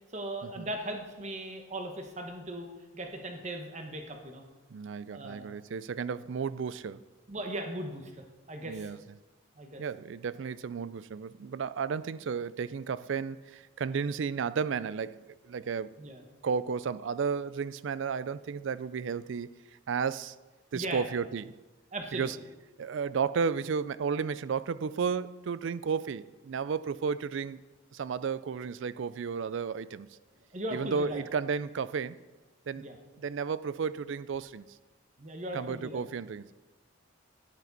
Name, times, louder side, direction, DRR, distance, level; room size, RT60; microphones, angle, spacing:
voice 1, 0.1-2.7 2.9-4.4 5.1-5.5 7.3-8.1 8.5-8.9 9.6-9.8 16.0-16.2 20.7-21.1 21.9-22.3 30.5-31.2 32.8-32.9 35.2-36.0, right 1 dB, 35° right, 1.1 m, -38 dB
voice 2, 4.7-7.0 8.6-9.0 9.8-16.0 16.4-19.6 19.9-20.4 20.7-21.6 22.1-22.4 22.8-27.6 27.9-30.1 30.7-32.2 32.7-32.9 33.2-34.7 35.5-36.5, right 6 dB, 60° right, 0.4 m, -33 dB
11.5 x 11.0 x 4.1 m
head